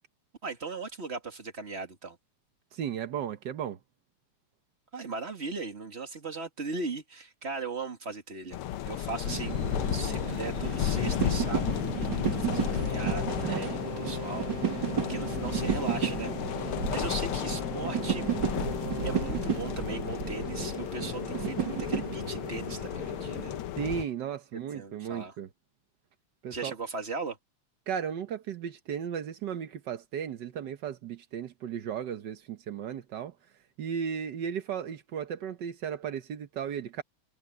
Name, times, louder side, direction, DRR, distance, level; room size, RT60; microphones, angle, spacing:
voice 1, 0.4-2.2 4.9-8.6 8.8-9.6 9.9-18.3 19.0-23.5 24.7-25.3 26.5-27.4, right 3 dB, 25° right, 2.2 m, -38 dB
voice 2, 2.7-3.8 23.8-25.5 26.4-26.7 27.9-33.3 33.8-37.0, right 8 dB, 80° right, 0.9 m, -35 dB
sound 1, 8.5-24.0, left 11 dB, 80° left, 1.2 m, -34 dB
sound 2, 9.3-23.6, right 8 dB, 40° right, 2.2 m, -33 dB
Brass instrument, 12.6-19.5, left 8 dB, 50° left, 3.7 m, -41 dB
omnidirectional pair, 3.3 m